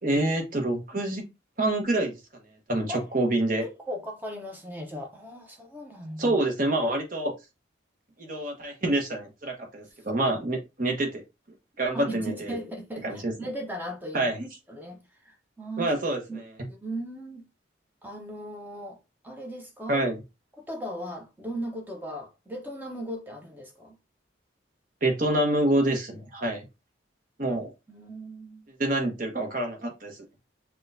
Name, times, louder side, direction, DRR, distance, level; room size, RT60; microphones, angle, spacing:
voice 1, 0.0-1.3 1.6-2.2 2.7-3.7 6.2-7.3 8.2-11.2 11.8-12.5 13.0-13.3 14.1-14.5 15.8-16.4 19.9-20.2 25.0-26.6 27.4-27.7 28.8-30.2, right 1 dB, 45° right, 1.0 m, -27 dB
voice 2, 3.6-6.4 11.9-14.3 14.7-15.9 16.3-17.4 18.0-20.0 20.7-24.0 27.9-28.7, equal, 10° right, 0.7 m, -37 dB
6.0 x 2.3 x 2.6 m
head